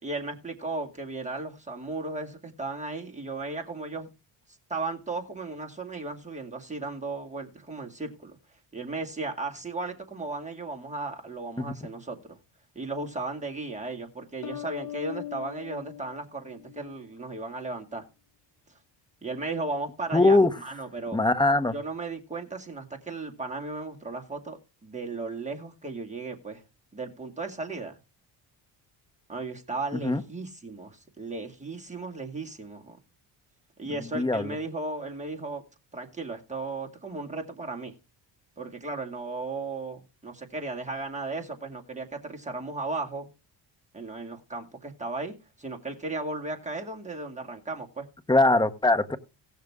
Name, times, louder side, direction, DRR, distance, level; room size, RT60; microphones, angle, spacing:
voice 1, 0.0-4.1 4.7-8.4 8.7-12.4 12.7-18.0 19.2-21.2 21.7-26.6 26.9-28.0 29.3-33.0 33.8-35.6 35.9-37.9 38.6-43.3 43.9-48.1, right 3 dB, 15° right, 2.2 m, -35 dB
sound 1, 14.4-17.1, left 13 dB, 40° left, 1.2 m, -40 dB
voice 2, 20.1-20.5 21.1-21.7 30.0-30.2 34.1-34.5 48.3-49.2, left 2 dB, 10° left, 0.9 m, -21 dB
17.5 x 6.6 x 3.6 m
cardioid pair, 100°, 46 cm